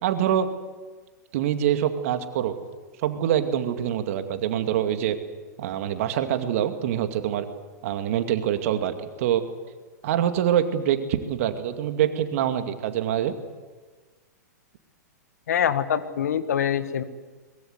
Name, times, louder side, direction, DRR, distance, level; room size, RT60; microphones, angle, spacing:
voice 1, 0.0-0.5 1.3-2.5 3.0-5.2 5.6-7.5 7.8-9.4 10.0-13.3, right 10 dB, 50° right, 7 dB, 2.3 m, -25 dB
voice 2, 15.5-17.0, left 8 dB, 65° left, 12 dB, 1.6 m, -24 dB
23.0 x 21.5 x 8.1 m, 1.4 s
figure-of-eight pair, 105°, 9 cm